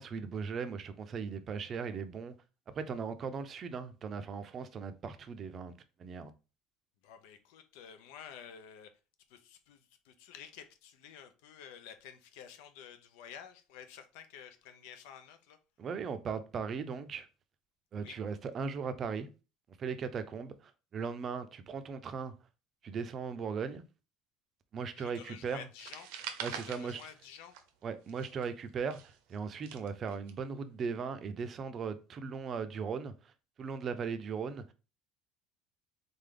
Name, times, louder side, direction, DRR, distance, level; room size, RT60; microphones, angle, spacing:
voice 1, 0.0-2.3 2.7-5.7 6.0-6.3 15.8-17.3 17.9-19.3 19.8-22.3 22.8-23.8 24.7-25.7 26.4-27.0 27.8-33.3 33.6-34.7, right 5 dB, 30° right, 0.5 m, -38 dB
voice 2, 7.0-8.9 9.3-15.6 17.9-18.2 25.0-26.1 26.5-27.6, left 8 dB, 80° left, 0.7 m, -51 dB
sound 1, 25.8-27.8 28.1-30.3, right 9 dB, 80° right, 0.7 m, -44 dB
3.9 x 3.4 x 3.8 m
cardioid pair, 150°, 0 cm